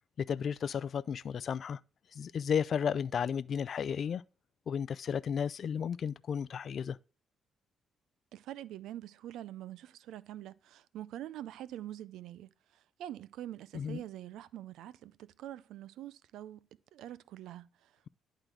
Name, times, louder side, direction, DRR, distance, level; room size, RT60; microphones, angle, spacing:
voice 1, 0.2-1.8 2.1-4.2 4.7-7.0 13.7-14.0, left 7 dB, 55° left, 0.3 m, -33 dB
voice 2, 8.3-16.6 16.9-17.9, right 12 dB, 85° right, 0.4 m, -45 dB
11.0 x 3.8 x 4.6 m
cardioid pair, 90°, 0 cm